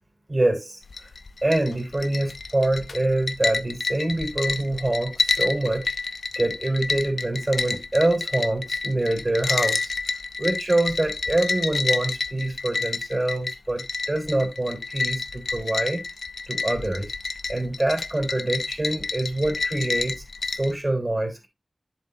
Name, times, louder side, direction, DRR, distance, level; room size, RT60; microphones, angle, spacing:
voice 1, 0.3-0.8 1.4-5.9 6.3-9.9 10.4-16.0 16.5-17.1 17.5-21.5, right 1 dB, 30° right, 3.1 m, -25 dB
sound 1, 0.8-20.7, left 4 dB, 85° left, 0.6 m, -29 dB
10.5 x 7.5 x 2.6 m
wide cardioid pair, 90°, 0 cm